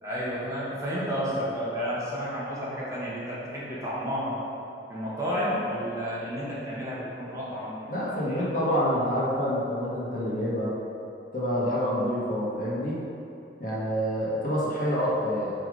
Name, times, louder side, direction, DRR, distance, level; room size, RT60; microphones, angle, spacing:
voice 1, 0.0-4.4 4.9-8.4, equal, 20° right, -8 dB, 1.5 m, -31 dB
voice 2, 7.9-10.7 11.3-13.0 13.6-15.5, equal, 50° left, -6 dB, 1.4 m, -27 dB
6.0 x 4.9 x 4.8 m, 2.7 s
head